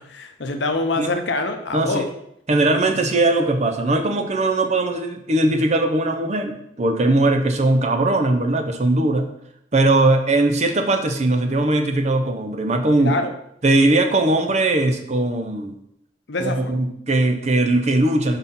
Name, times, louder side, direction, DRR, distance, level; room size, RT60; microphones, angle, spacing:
voice 1, 0.0-2.1 13.0-13.3 16.3-16.8, left 3 dB, 70° left, 6 dB, 0.8 m, -25 dB
voice 2, 1.7-2.1 2.5-9.3 9.7-13.1 13.6-15.7 16.4-18.4, right 2 dB, 40° right, 6 dB, 0.7 m, -19 dB
5.3 x 4.2 x 5.5 m, 0.75 s
head